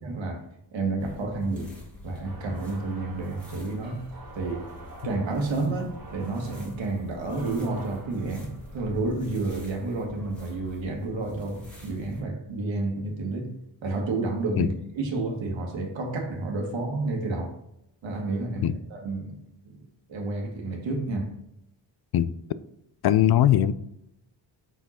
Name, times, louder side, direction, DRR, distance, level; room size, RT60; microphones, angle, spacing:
voice 1, 0.0-0.5 0.7-4.7 5.0-17.6 18.0-21.3, right 2 dB, 85° right, 1.5 m, -30 dB
sound 1, 1.0-12.2, left 1 dB, 5° left, 1.7 m, -46 dB
sound 2, 2.2-10.4, right 3 dB, 50° right, 1.5 m, -48 dB
voice 2, 23.0-23.7, left 11 dB, 60° left, 0.5 m, -20 dB
5.7 x 4.7 x 4.3 m
wide cardioid pair, 125°, 45 cm